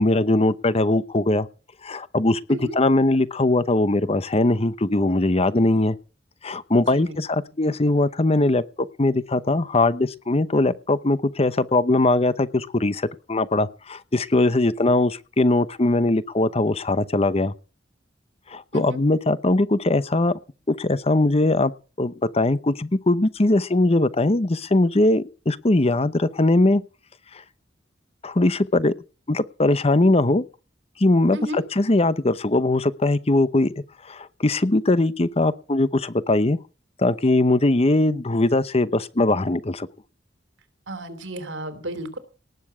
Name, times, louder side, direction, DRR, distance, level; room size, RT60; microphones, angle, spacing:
voice 1, 0.0-1.5 1.8-6.0 6.4-17.5 18.5-20.4 20.7-21.7 22.0-26.8 28.2-28.9 29.3-30.4 31.0-33.7 34.0-36.6 37.0-39.9, left 2 dB, 35° left, 15 dB, 0.9 m, -21 dB
voice 2, 6.7-7.4 18.7-19.0 31.3-31.6 40.9-42.2, equal, 85° right, 11 dB, 3.1 m, -34 dB
19.0 x 7.1 x 8.3 m, 0.36 s
head